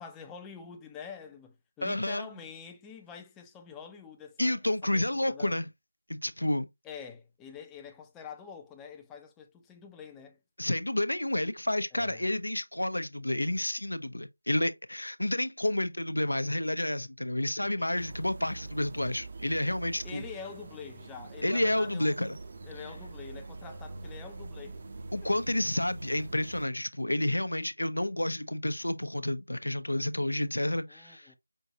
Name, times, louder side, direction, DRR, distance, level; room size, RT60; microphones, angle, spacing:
voice 1, 0.0-5.6 6.8-10.4 11.9-12.2 17.6-17.8 20.0-22.3 22.6-24.8 30.9-31.4, left 6 dB, 5° left, 0.5 m, -46 dB
voice 2, 1.8-2.3 4.4-5.7 6.1-6.7 10.6-20.2 21.4-22.4 25.1-31.3, left 1 dB, 90° left, 0.7 m, -30 dB
sound 1, 17.9-26.6, right 3 dB, 35° right, 0.6 m, -44 dB
5.5 x 2.7 x 2.8 m
figure-of-eight pair, 170°, 0 cm